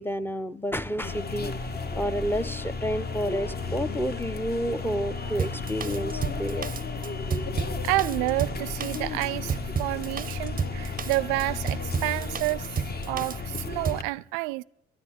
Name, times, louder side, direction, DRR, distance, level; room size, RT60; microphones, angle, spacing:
voice 1, 0.0-1.7 2.0-6.7, equal, 5° left, 0.7 m, -30 dB
sound 1, 1.0-14.0, left 4 dB, 30° left, 1.1 m, -33 dB
sound 2, 2.4-12.4, left 4 dB, 60° left, 1.7 m, -48 dB
Drum kit, 5.4-14.1, right 7 dB, 25° right, 0.6 m, -32 dB
voice 2, 7.8-12.7 13.1-14.6, right 22 dB, 75° right, 0.5 m, -29 dB
12.5 x 10.0 x 7.3 m
hypercardioid pair, 50°, 32 cm